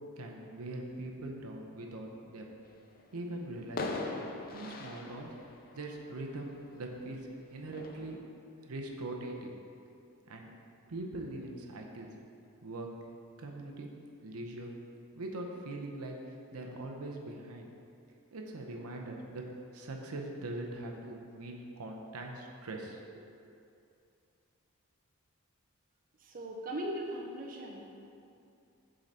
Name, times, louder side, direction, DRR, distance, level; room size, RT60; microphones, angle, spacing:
voice 1, 0.2-2.5 3.1-4.0 4.5-5.3 5.7-8.3 8.6-9.5 10.3-10.5 10.9-12.1 12.6-12.9 13.4-13.9 14.2-14.7 15.2-17.7 18.3-19.4 19.7-23.2, right 2 dB, 75° right, 1 dB, 0.7 m, -42 dB
sound 1, 3.0-3.2 3.8-6.9 7.7-8.2, left 3 dB, 40° left, 0.5 m, -40 dB
voice 2, 26.2-28.0, right 1 dB, 40° right, -1 dB, 0.5 m, -39 dB
7.4 x 3.9 x 4.0 m, 2.6 s
head